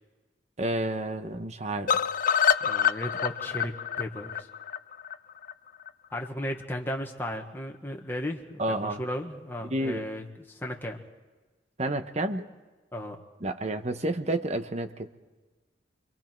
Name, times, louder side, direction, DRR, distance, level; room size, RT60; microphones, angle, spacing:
voice 1, 0.6-1.9 8.6-9.0 9.7-10.1 11.8-12.5 13.4-15.1, right 1 dB, 40° right, 8 dB, 1.1 m, -30 dB
sound 1, 1.9-5.9 6.2-6.3 6.6-6.7 7.0-7.1, left 8 dB, 50° left, 0.6 m, -27 dB
voice 2, 2.6-4.5 6.1-11.0 12.9-13.2, left 1 dB, 10° left, 1 dB, 1.6 m, -35 dB
29.5 x 23.0 x 4.6 m, 1.2 s
head